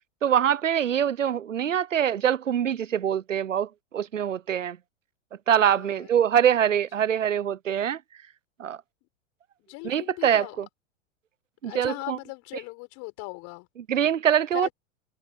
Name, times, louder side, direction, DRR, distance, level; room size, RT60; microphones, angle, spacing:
voice 1, 0.2-3.7 3.9-4.8 5.5-8.0 8.6-8.8 9.8-10.7 11.6-12.2 13.9-14.7, right 9 dB, 85° right, 0.8 m, -24 dB
voice 2, 5.7-6.2 9.6-10.6 11.7-13.7 14.5-14.7, left 29 dB, 45° left, 6.8 m, -39 dB
hypercardioid pair, 100°, 37 cm